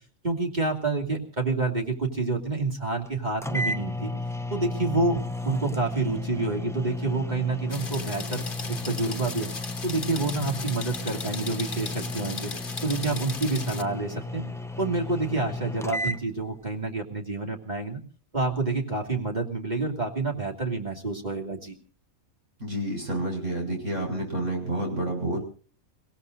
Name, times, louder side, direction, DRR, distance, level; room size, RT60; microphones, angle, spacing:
voice 1, 0.2-4.1 4.5-9.5 9.8-12.5 12.8-14.4 14.8-18.0 18.3-21.8, right 3 dB, 30° right, 1 dB, 2.9 m, -28 dB
sound 1, 3.1-3.2 3.4-16.2, left 2 dB, 5° left, 0.5 m, -34 dB
sound 2, 7.7-13.8, left 4 dB, 40° left, 1.5 m, -37 dB
voice 2, 22.6-25.4, right 1 dB, 55° right, 0 dB, 7.2 m, -29 dB
30.0 x 17.0 x 2.6 m, 0.41 s
omnidirectional pair, 1.5 m